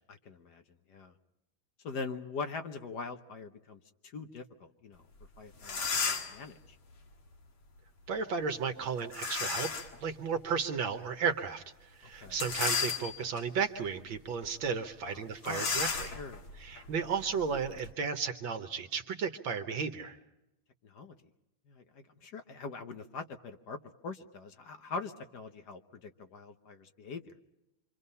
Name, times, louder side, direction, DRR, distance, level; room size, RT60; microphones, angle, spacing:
voice 1, 0.1-0.6 0.9-1.1 1.8-3.8 4.1-5.0 5.4-6.6 12.2-12.4 15.1-15.7 16.2-16.4 20.8-21.1 21.7-23.8 24.0-27.3, left 4 dB, 60° left, 8 dB, 1.4 m, -42 dB
sound 1, 5.2-5.3 5.6-6.4 9.1-10.0 10.5-10.6 12.3-13.4 14.0-14.2 14.4-14.6 15.4-17.9, left 5 dB, 85° left, 2.7 m, -34 dB
voice 2, 8.1-9.7 10.0-16.2 16.6-20.2, right 6 dB, 70° right, 8 dB, 1.7 m, -34 dB
28.0 x 25.0 x 5.5 m, 0.91 s
omnidirectional pair, 2.3 m